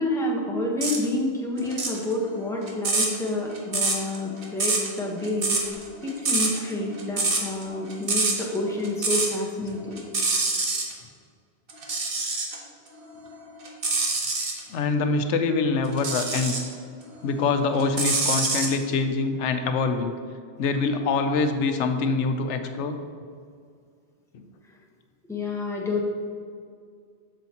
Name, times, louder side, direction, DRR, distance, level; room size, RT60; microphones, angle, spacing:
voice 1, 0.0-5.6 6.0-10.0 25.3-26.0, left 2 dB, 5° left, -2 dB, 0.9 m, -29 dB
sound 1, 0.8-1.0 1.6-9.4 9.7-10.9 11.7-12.6 13.1-14.6 15.9-16.7 17.2-18.7, right 3 dB, 55° right, 1.2 m, -26 dB
voice 2, 14.7-16.6 17.2-20.1 20.6-22.9 24.3-24.4, left 4 dB, 85° left, 7 dB, 0.9 m, -24 dB
7.9 x 7.2 x 2.9 m, 2.2 s
omnidirectional pair, 1.2 m